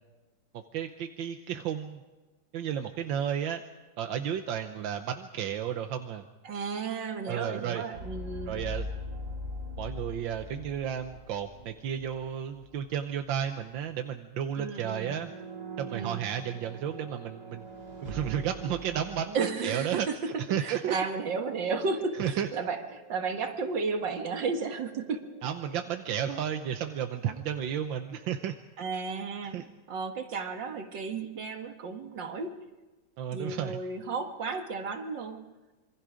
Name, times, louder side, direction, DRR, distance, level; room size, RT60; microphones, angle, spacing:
voice 1, 0.7-2.0 2.5-3.6 4.0-6.2 7.3-7.8 8.5-8.8 9.8-15.3 15.8-17.6 18.0-19.4 19.6-20.1 20.5-21.0 22.2-22.5 25.4-28.6 29.5-29.7 33.2-33.8, right 9 dB, 90° right, 6 dB, 1.7 m, -32 dB
voice 2, 6.4-8.6 14.6-15.2 15.9-16.2 19.3-20.1 20.6-25.2 28.8-29.6 29.9-32.5 33.3-35.4, right 4 dB, 75° right, 5 dB, 2.3 m, -33 dB
sound 1, 7.9-12.8 13.0-13.3 14.7-19.3, equal, 55° right, 3.4 m, -41 dB
sound 2, 20.8-28.3, equal, 70° left, 3.3 m, -54 dB
26.5 x 24.0 x 5.1 m, 1.2 s
omnidirectional pair, 2.0 m